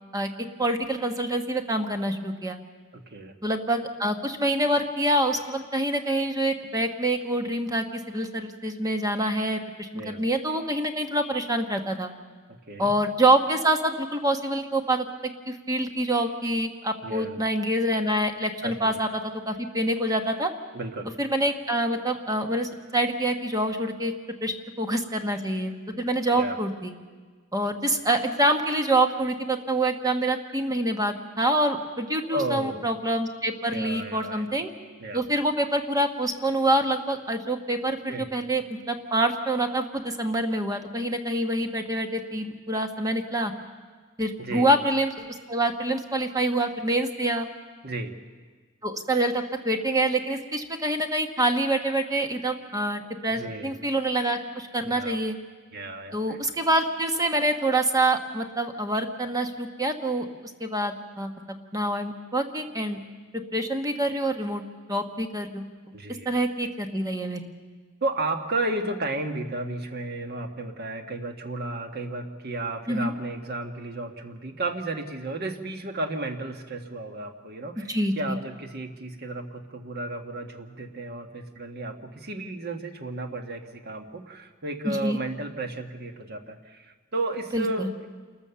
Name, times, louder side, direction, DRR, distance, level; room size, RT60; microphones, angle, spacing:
voice 1, 0.1-2.6 3.4-12.1 12.8-20.5 21.2-24.1 24.4-25.7 26.0-26.9 27.5-34.7 35.1-43.5 44.2-47.5 48.8-55.4 56.1-60.3 60.6-61.3 61.7-63.0 63.3-64.6 64.9-65.6 66.2-67.5 72.9-73.1 77.9-78.4 84.8-85.2 87.5-87.9, right 1 dB, 20° right, 6 dB, 1.2 m, -26 dB
voice 2, 2.9-3.3 9.9-10.2 12.7-12.9 17.0-17.4 18.6-19.0 20.7-21.1 26.3-26.6 32.3-32.8 33.7-34.6 35.0-35.2 38.1-38.3 44.4-44.7 47.8-48.1 53.3-53.7 54.8-55.2 55.7-56.4 65.9-66.3 68.0-88.1, right 2 dB, 55° right, 6 dB, 1.5 m, -33 dB
27.5 x 14.0 x 6.9 m, 1.5 s
head